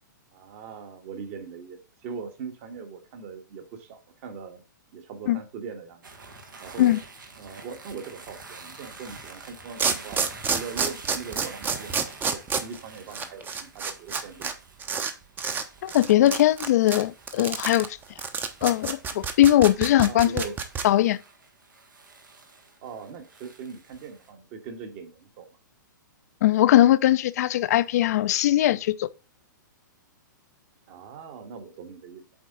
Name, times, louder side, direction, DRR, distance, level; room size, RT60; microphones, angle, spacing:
voice 1, 0.3-4.6 4.9-6.0 6.6-7.0 7.4-14.5 20.1-20.6 22.8-25.5 30.9-32.2, right 5 dB, 40° right, 1.7 m, -40 dB
sound 1, 6.0-24.3, right 3 dB, 75° right, 1.8 m, -48 dB
sound 2, 9.2-9.3 9.8-14.5 14.8-15.1 15.4-15.6 15.9-20.8, right 6 dB, 20° right, 0.9 m, -28 dB
voice 2, 15.8-17.9 18.6-20.4 20.8-21.2 26.4-29.1, left 13 dB, 50° left, 0.5 m, -20 dB
7.8 x 4.4 x 3.9 m
figure-of-eight pair, 115°, 11 cm